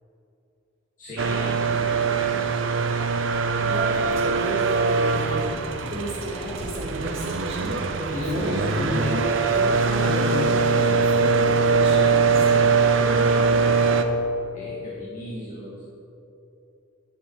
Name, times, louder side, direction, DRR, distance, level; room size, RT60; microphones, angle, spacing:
voice 1, 1.0-2.4 3.6-5.5 6.1-6.5 7.0-7.2 8.1-9.4 9.6-13.7 14.5-15.8, equal, 40° left, -9 dB, 2.1 m, -34 dB
sound 1, 1.2-14.0, right 4 dB, 70° right, 0.7 m, -22 dB
Female speech woman speaking, 3.7-12.5, equal, 30° right, 2.8 m, -34 dB
11.5 x 7.3 x 4.9 m, 2.8 s
head